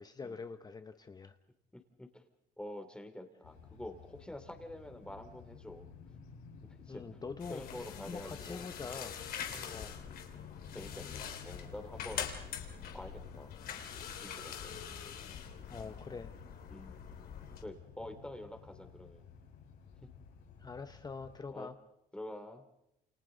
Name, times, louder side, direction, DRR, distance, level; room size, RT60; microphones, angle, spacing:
voice 1, 0.0-1.4 6.9-9.2 9.7-10.0 15.7-16.3 20.6-21.8, left 4 dB, 25° left, 9 dB, 0.9 m, -45 dB
voice 2, 2.6-5.9 6.9-7.2 7.5-8.7 9.0-9.1 9.5-9.8 10.7-12.3 12.9-13.5 14.2-14.8 15.7-15.8 16.7-17.0 17.6-19.3 21.5-21.7 22.1-22.6, left 1 dB, 5° left, 6 dB, 2.8 m, -47 dB
sound 1, 3.4-21.4, left 6 dB, 85° left, 7.8 m, -54 dB
sound 2, 7.4-17.6, left 8 dB, 65° left, 3.2 m, -44 dB
29.0 x 28.5 x 3.9 m, 0.82 s
cardioid pair, 110°, 17 cm